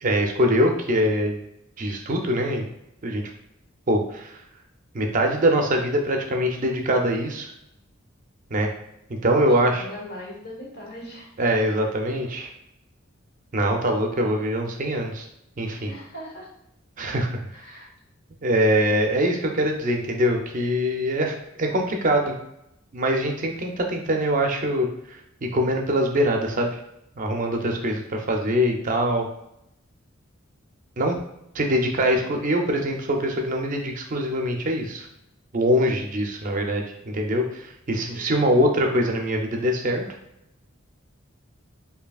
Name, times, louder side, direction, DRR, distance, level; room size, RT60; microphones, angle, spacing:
voice 1, 0.0-1.4 1.8-2.6 3.0-3.2 3.9-4.4 4.9-7.5 8.5-8.7 9.1-9.9 11.4-12.5 13.5-15.3 15.6-15.9 17.0-17.3 18.4-22.3 22.9-26.8 27.2-29.3 31.0-31.2 31.5-35.1 35.5-40.0, equal, 40° right, 3 dB, 0.5 m, -23 dB
voice 2, 9.3-11.3 15.9-16.5 17.5-17.9 38.1-38.6, left 1 dB, 50° left, -3 dB, 1.3 m, -40 dB
4.9 x 2.7 x 2.3 m, 0.83 s
head